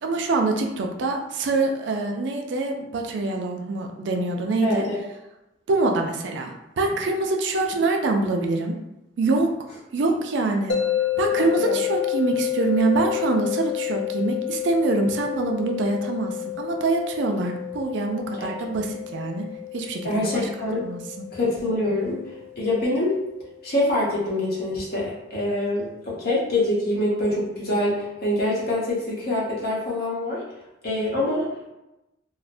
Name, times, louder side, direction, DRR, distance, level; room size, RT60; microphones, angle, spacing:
voice 1, 0.0-4.9 5.7-8.7 9.2-9.5 9.9-10.8 11.2-19.5 19.7-20.5 20.8-21.0, right 3 dB, 70° right, 2 dB, 0.4 m, -25 dB
voice 2, 4.6-5.0 11.4-11.8 18.4-18.5 20.0-20.8 21.3-22.2 22.6-23.1 23.6-30.4 30.8-31.5, left 1 dB, 50° left, -5 dB, 0.9 m, -25 dB
sound 1, 10.7-23.8, left 13 dB, 80° left, 0.4 m, -30 dB
3.1 x 2.1 x 2.5 m, 0.95 s
head